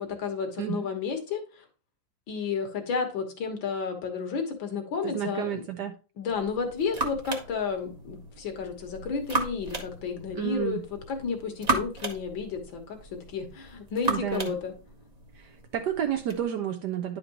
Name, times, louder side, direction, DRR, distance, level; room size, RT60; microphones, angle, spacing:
voice 1, 0.0-1.7 2.3-5.6 6.2-10.8 11.1-14.7, left 5 dB, 80° left, 4 dB, 2.2 m, -32 dB
voice 2, 0.6-0.9 5.0-5.9 10.3-10.8 14.0-14.5 15.3-17.2, right 10 dB, 70° right, 6 dB, 1.1 m, -31 dB
sound 1, 6.3-16.4, right 2 dB, 25° right, 0.9 m, -36 dB
10.5 x 5.1 x 2.9 m, 0.35 s
omnidirectional pair, 2.1 m